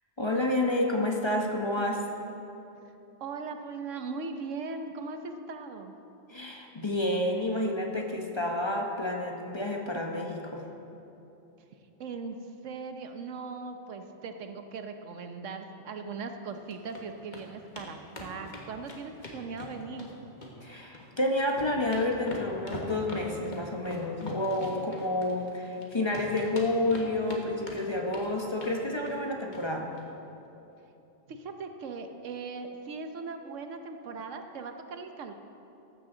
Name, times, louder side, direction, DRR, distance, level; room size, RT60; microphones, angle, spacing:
voice 1, 0.2-2.1 6.3-10.6 20.6-29.8, left 1 dB, 25° left, 1 dB, 1.0 m, -29 dB
voice 2, 3.2-5.9 12.0-12.4 12.6-20.1 31.3-35.3, right 4 dB, 90° right, 6 dB, 1.2 m, -39 dB
sound 1, 16.5-17.0 17.3-17.4 17.8-17.9 18.1-20.1 20.4-21.1 21.4-25.8 26.1-27.4 27.7-28.3 28.6-28.8 29.1-29.2 29.5-29.6 29.9-30.0, left 2 dB, 40° left, 1.6 m, -42 dB
14.5 x 12.0 x 3.9 m, 3.0 s
omnidirectional pair, 1.2 m